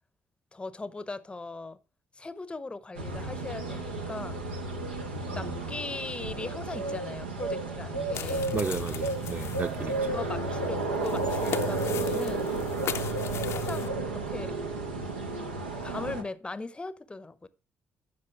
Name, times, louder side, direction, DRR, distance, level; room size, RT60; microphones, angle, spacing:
voice 1, 0.5-1.8 2.1-4.4 5.3-8.6 9.8-12.5 13.5-14.6 15.8-17.5, left 3 dB, 20° left, 0.7 m, -39 dB
sound 1, 2.9-16.2, right 2 dB, 85° right, 1.0 m, -32 dB
voice 2, 5.3-5.7 8.5-10.1, right 4 dB, 30° right, 1.0 m, -34 dB
sound 2, 8.1-13.9, left 10 dB, 55° left, 0.6 m, -39 dB
15.0 x 5.5 x 3.4 m
figure-of-eight pair, 45°, 6 cm